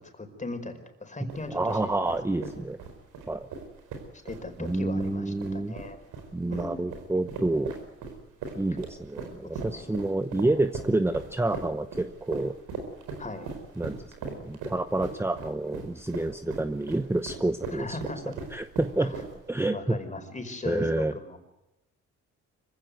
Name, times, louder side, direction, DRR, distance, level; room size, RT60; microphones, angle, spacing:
voice 1, 0.2-2.5 4.2-6.0 6.5-7.0 9.5-10.0 13.2-13.5 17.7-18.3 19.0-19.1 19.7-21.4, left 2 dB, 25° left, 6 dB, 4.8 m, -38 dB
sound 1, 1.3-19.6, right 4 dB, 90° right, 4.8 m, -40 dB
voice 2, 1.5-2.8 3.3-3.5 4.6-5.7 6.3-7.7 8.6-12.5 13.8-18.0 18.5-19.1 19.5-20.0 20.7-21.1, right 2 dB, 10° right, 10 dB, 0.9 m, -28 dB
25.0 x 16.0 x 9.4 m, 0.95 s
cardioid pair, 90°, 30 cm